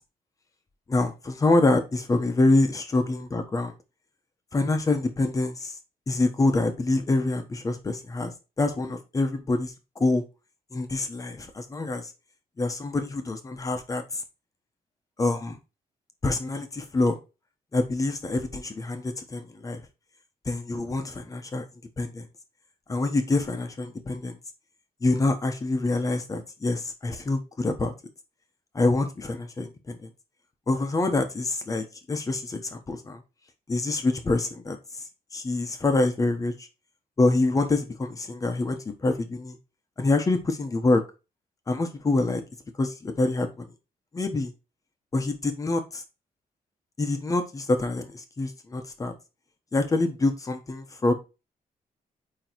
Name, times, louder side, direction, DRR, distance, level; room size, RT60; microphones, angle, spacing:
voice 1, 0.9-3.7 4.5-5.7 6.1-8.3 8.6-10.2 10.7-12.1 12.6-14.0 15.2-15.6 16.2-17.2 17.7-19.8 20.5-21.6 22.0-22.3 22.9-24.3 25.0-27.9 28.7-30.1 30.7-33.2 33.7-34.8 35.3-36.5 37.2-39.6 40.0-41.0 41.7-42.4 42.8-43.7 44.1-44.5 45.1-46.0 47.0-48.1 48.4-49.1 49.7-51.1, left 2 dB, 20° left, 6 dB, 1.0 m, -26 dB
9.3 x 3.1 x 4.5 m, 0.29 s
wide cardioid pair, 175°, 15 cm